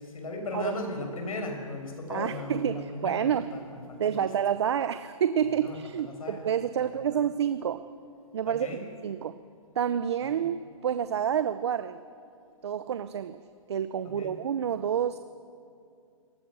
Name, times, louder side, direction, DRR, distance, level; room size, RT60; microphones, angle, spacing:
voice 1, 0.0-4.3 5.6-5.8 6.0-6.4 7.1-7.2 8.4-8.8 10.4-10.5 14.0-14.3, left 2 dB, 85° left, 3 dB, 6.2 m, -37 dB
voice 2, 2.1-3.6 4.0-7.9 8.3-8.7 9.0-9.4 9.8-12.0 12.6-13.4 13.7-15.2, right 9 dB, 50° right, 12 dB, 0.7 m, -28 dB
27.5 x 19.5 x 6.3 m, 2.4 s
hypercardioid pair, 175°, 18 cm